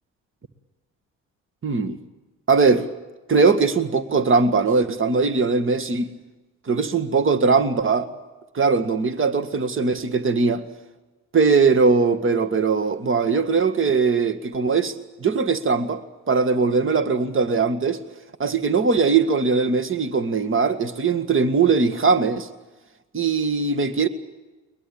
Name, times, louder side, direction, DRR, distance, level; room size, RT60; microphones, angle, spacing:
voice 1, 1.6-2.0 2.5-2.9 3.3-6.1 6.7-8.1 8.5-10.6 11.3-14.9 15.2-16.0 16.3-18.0 18.4-22.5 23.1-24.1, right 4 dB, 35° right, 1.9 m, -20 dB
22.5 x 20.5 x 8.8 m
hypercardioid pair, 55°, 38 cm